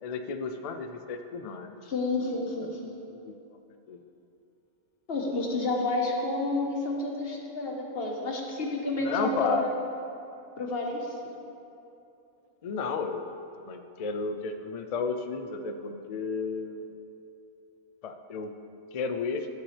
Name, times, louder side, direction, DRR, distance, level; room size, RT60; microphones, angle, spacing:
voice 1, 0.0-1.8 2.5-2.8 3.1-3.6 3.9-4.0 9.0-9.7 12.6-16.9 18.0-18.5 18.9-19.5, left 4 dB, 70° left, 7 dB, 0.3 m, -33 dB
voice 2, 1.9-2.9 5.1-9.7 10.6-11.1, left 2 dB, 50° left, 0 dB, 1.4 m, -30 dB
13.0 x 8.9 x 3.3 m, 2.8 s
omnidirectional pair, 1.3 m